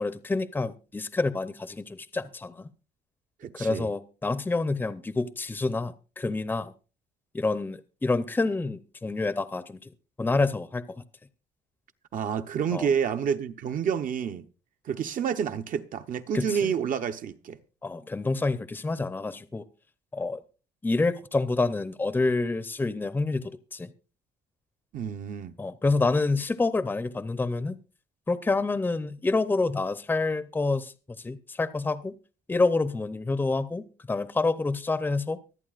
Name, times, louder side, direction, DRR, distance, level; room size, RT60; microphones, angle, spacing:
voice 1, 0.0-2.6 3.6-6.7 7.3-9.8 10.2-11.0 12.7-12.9 16.3-16.7 17.8-19.6 20.1-20.4 20.8-23.9 25.6-27.8 28.3-30.9 31.2-32.1 32.5-35.4, left 3 dB, 10° left, 0.6 m, -28 dB
voice 2, 3.4-3.9 12.1-14.5 14.8-17.6 24.9-25.6, right 7 dB, 50° right, 0.8 m, -29 dB
24.5 x 8.4 x 2.4 m
cardioid pair, 110°, 17 cm